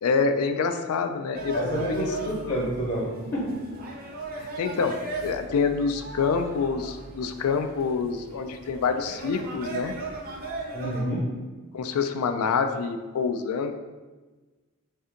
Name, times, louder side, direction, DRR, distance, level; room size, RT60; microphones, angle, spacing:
voice 1, 0.0-1.6 1.9-2.5 4.4-10.0 11.7-13.7, left 5 dB, 80° left, 8 dB, 0.3 m, -27 dB
sound 1, 1.3-11.0, right 3 dB, 40° right, 0.5 m, -38 dB
voice 2, 1.5-3.6 10.7-11.3, equal, 40° left, -5 dB, 0.9 m, -28 dB
3.3 x 2.7 x 3.8 m, 1.3 s
head